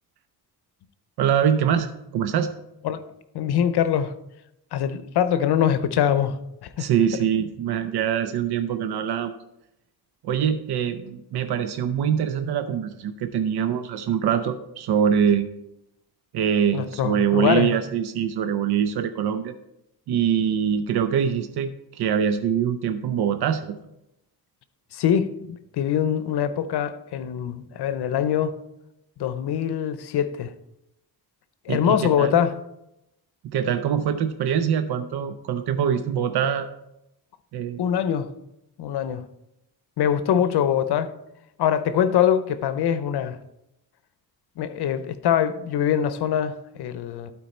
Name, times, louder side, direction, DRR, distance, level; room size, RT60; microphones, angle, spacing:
voice 1, 1.2-2.5 6.8-9.3 10.2-15.5 16.3-19.5 20.1-23.7 31.7-32.4 33.4-36.7 37.5-37.8, right 8 dB, 75° right, 0.6 m, -24 dB
voice 2, 3.3-4.1 4.7-6.4 6.6-6.9 16.7-17.7 24.9-28.6 29.2-30.5 31.7-32.6 37.8-38.3 38.8-39.2 40.0-41.1 41.6-43.4 44.6-47.3, left 9 dB, 90° left, 0.7 m, -23 dB
12.5 x 4.6 x 4.3 m
wide cardioid pair, 140°, 38 cm